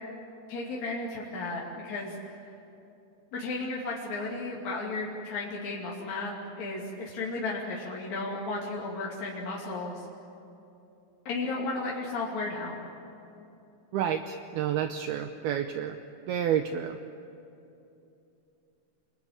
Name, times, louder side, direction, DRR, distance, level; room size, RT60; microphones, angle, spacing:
voice 1, 0.5-2.4 3.3-10.0 11.2-12.9, left 3 dB, 45° left, -4 dB, 3.3 m, -34 dB
voice 2, 13.9-16.0 16.3-17.0, right 9 dB, 90° right, 7 dB, 2.2 m, -29 dB
29.5 x 21.0 x 8.8 m, 2.8 s
omnidirectional pair, 5.6 m